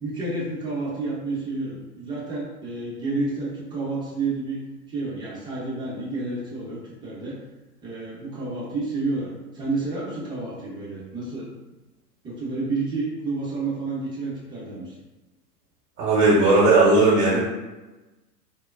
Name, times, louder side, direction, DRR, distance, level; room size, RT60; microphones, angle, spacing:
voice 1, 0.0-7.4 7.8-11.5 12.2-14.9, right 3 dB, 10° right, -7 dB, 0.7 m, -30 dB
voice 2, 16.0-17.4, right 2 dB, 40° right, -6 dB, 0.9 m, -17 dB
3.1 x 2.1 x 2.3 m, 1.1 s
figure-of-eight pair, 105°, 48 cm